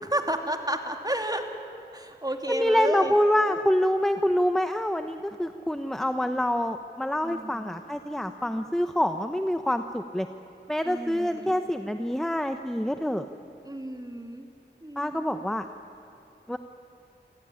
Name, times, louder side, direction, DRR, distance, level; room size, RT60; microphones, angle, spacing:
voice 1, 0.0-1.4 1.9-3.1 3.5-3.6 7.2-7.7 10.8-11.6 13.6-14.5 14.8-15.2, right 1 dB, 20° right, 4 dB, 2.6 m, -31 dB
voice 2, 2.5-10.3 10.7-13.3 15.0-15.7 16.5-16.6, left 1 dB, ahead, 8 dB, 0.9 m, -26 dB
27.0 x 16.0 x 9.9 m, 2.9 s
wide cardioid pair, 40°, 19 cm